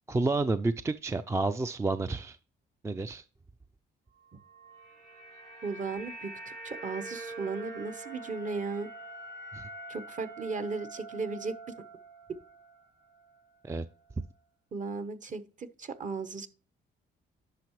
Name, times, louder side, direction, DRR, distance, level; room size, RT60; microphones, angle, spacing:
voice 1, 0.1-2.4 2.8-3.2 9.5-9.7 13.6-13.8, right 3 dB, 15° right, 11 dB, 0.4 m, -30 dB
sound 1, 4.5-12.8 13.1-13.3, right 2 dB, 90° right, 4.6 m, -45 dB
voice 2, 5.6-8.9 9.9-11.5 14.7-16.5, right 4 dB, 40° right, 11 dB, 0.9 m, -36 dB
10.5 x 5.7 x 3.1 m, 0.36 s
cardioid pair, 90°, 20 cm